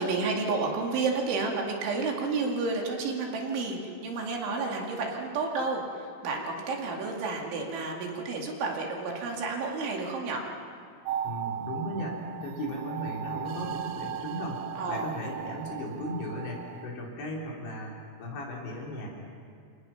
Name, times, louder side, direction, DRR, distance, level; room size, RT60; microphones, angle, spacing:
voice 1, 0.0-10.5 14.8-15.1, right 3 dB, 65° right, 0 dB, 4.6 m, -31 dB
sound 1, 11.0-16.9, right 10 dB, 85° right, 2.3 m, -37 dB
voice 2, 11.2-19.1, equal, 60° left, -2 dB, 6.0 m, -36 dB
28.5 x 26.5 x 5.9 m, 2.3 s
omnidirectional pair, 6.0 m